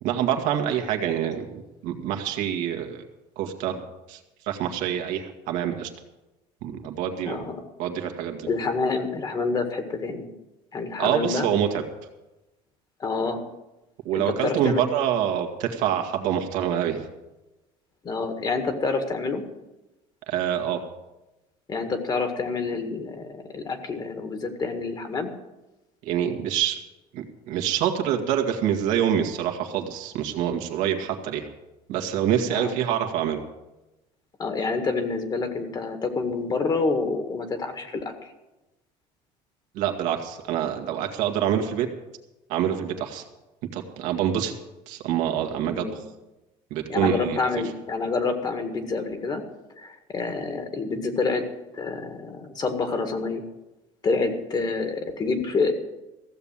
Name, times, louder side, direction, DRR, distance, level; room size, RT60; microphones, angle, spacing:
voice 1, 0.0-3.0 3.4-3.8 4.1-4.2 4.5-5.9 6.6-7.4 7.8-8.5 11.0-11.8 14.0-17.1 20.3-20.8 26.0-26.8 27.1-31.5 31.9-33.4 39.7-41.9 42.5-43.2 43.7-44.5 44.9-46.0 46.7-47.4, right 9 dB, 75° right, 4 dB, 1.8 m, -26 dB
voice 2, 7.3-7.6 8.4-10.3 10.7-11.5 13.0-13.5 14.1-14.8 18.0-19.4 21.7-25.3 32.5-32.7 34.4-38.3 45.7-46.0 46.9-49.4 49.8-51.4 51.7-53.4 54.0-55.7, left 4 dB, 30° left, 7 dB, 1.8 m, -27 dB
15.0 x 7.1 x 8.8 m, 1.0 s
cardioid pair, 125°, 13 cm